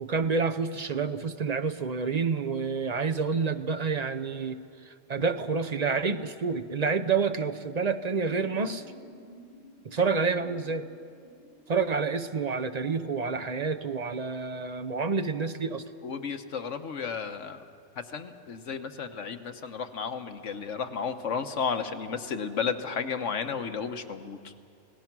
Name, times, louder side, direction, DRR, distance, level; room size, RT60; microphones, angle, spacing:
voice 1, 0.0-4.6 4.9-8.8 9.8-10.9 11.7-15.8, right 5 dB, 40° right, 8 dB, 0.7 m, -28 dB
sound 1, 7.7-13.4, left 1 dB, 40° left, 6.9 m, -54 dB
voice 2, 16.0-17.6 18.1-24.5, left 6 dB, 70° left, 7 dB, 1.4 m, -33 dB
29.5 x 18.0 x 6.0 m, 2.4 s
omnidirectional pair, 1.3 m